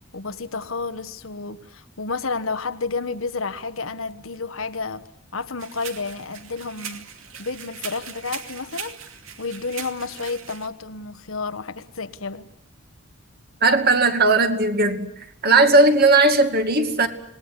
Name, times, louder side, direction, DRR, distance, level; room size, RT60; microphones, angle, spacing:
voice 1, 0.1-5.1 5.3-7.1 7.4-9.0 9.4-12.5, left 4 dB, 70° left, 1.4 m, -31 dB
sound 1, 5.6-10.7, right 8 dB, 70° right, 2.5 m, -39 dB
voice 2, 13.6-15.1 15.4-17.1, right 3 dB, 45° right, 2.4 m, -17 dB
26.5 x 20.0 x 9.7 m
head